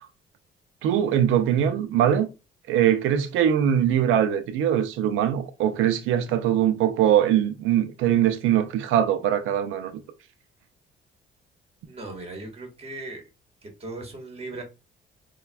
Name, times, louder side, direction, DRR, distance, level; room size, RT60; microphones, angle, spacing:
voice 1, 0.8-2.3 2.7-10.0, right 10 dB, 90° right, 0.5 m, -22 dB
voice 2, 11.9-13.2 13.6-14.6, right 2 dB, 30° right, 1.3 m, -38 dB
4.0 x 2.2 x 2.2 m
cardioid pair, 90°, 20 cm